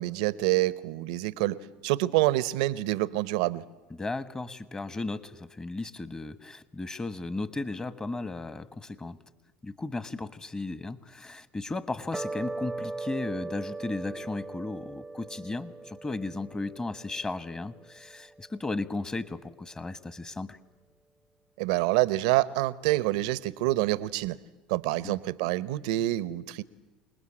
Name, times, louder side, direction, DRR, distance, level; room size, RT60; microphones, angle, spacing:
voice 1, 0.0-3.6 21.6-24.4 24.7-26.6, right 17 dB, 75° right, 18 dB, 0.8 m, -27 dB
voice 2, 3.9-9.2 9.6-20.6 25.0-25.2, left 2 dB, 20° left, 14 dB, 1.4 m, -35 dB
sound 1, 12.1-18.6, right 3 dB, 5° right, 0.8 m, -39 dB
27.5 x 20.0 x 8.8 m, 1.1 s
hypercardioid pair, 80°, 4 cm